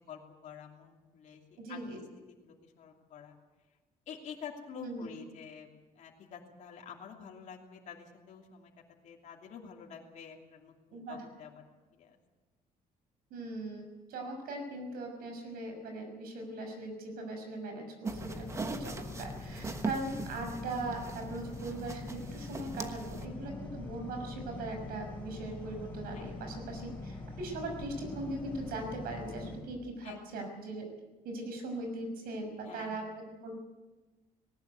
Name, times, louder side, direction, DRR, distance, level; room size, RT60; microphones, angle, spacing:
voice 1, 0.1-2.0 2.3-3.4 4.1-5.7 5.9-8.7 9.0-11.7 12.0-12.2 23.2-23.4 26.1-26.5 30.0-30.2 32.6-33.0, left 6 dB, 50° left, 0 dB, 2.9 m, -48 dB
voice 2, 1.6-2.0 4.7-5.2 10.9-11.2 13.3-30.9 31.2-33.5, right 2 dB, 80° right, 5 dB, 6.0 m, -40 dB
sound 1, 18.0-23.2, right 3 dB, 20° right, 1.3 m, -41 dB
sound 2, 18.1-29.6, left 3 dB, 10° left, 6.9 m, -43 dB
19.0 x 18.5 x 8.2 m, 1.2 s
cardioid pair, 160°, 15 cm